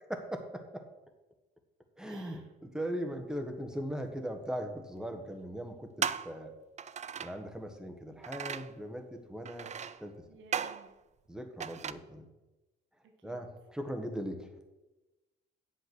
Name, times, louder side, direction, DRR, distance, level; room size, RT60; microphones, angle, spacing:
voice 1, 0.1-0.9 2.0-6.5 7.2-9.7 10.0-10.2 11.3-12.3 13.2-14.7, equal, 5° right, 5 dB, 1.5 m, -39 dB
voice 2, 2.0-2.5 10.3-10.9 13.0-13.5, right 4 dB, 75° right, 3 dB, 1.5 m, -57 dB
sound 1, 3.9-4.0 5.0-5.1 6.0-6.4 6.8-7.4 8.2-8.7 9.5-10.1 10.5-10.9 11.6-11.9, right 7 dB, 35° right, 0.4 m, -36 dB
8.2 x 7.8 x 6.2 m, 1.1 s
cardioid pair, 90°, 20 cm